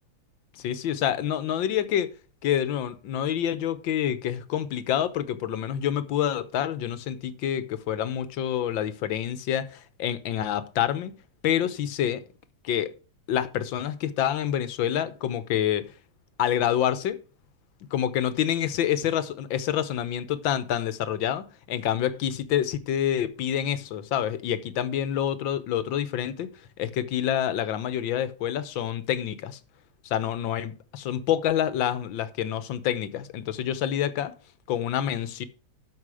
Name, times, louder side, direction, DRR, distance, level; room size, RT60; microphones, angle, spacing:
voice 1, 0.5-2.1 2.4-11.1 11.4-12.2 12.6-12.9 13.3-15.9 16.4-17.2 17.9-26.5 26.8-29.6 30.0-34.3 34.7-35.4, left 10 dB, 90° left, 1.6 m, -27 dB
13.0 x 5.2 x 4.8 m
omnidirectional pair, 2.0 m